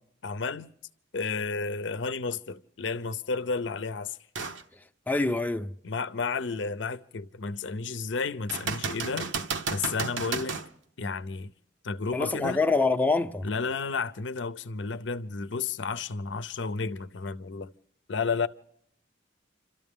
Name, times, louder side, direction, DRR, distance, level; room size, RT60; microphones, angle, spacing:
voice 1, 0.2-0.7 1.1-4.2 5.8-9.3 9.7-10.6 11.0-11.5 11.8-12.6 13.4-17.7 18.1-18.5, left 4 dB, 75° left, 0.6 m, -32 dB
sound 1, 4.3-4.6 5.2-5.3 8.5-10.7 14.4-14.5, right 4 dB, 80° right, 1.0 m, -32 dB
voice 2, 5.1-5.7 12.1-13.5, left 3 dB, 10° left, 0.6 m, -25 dB
29.5 x 13.0 x 3.6 m
head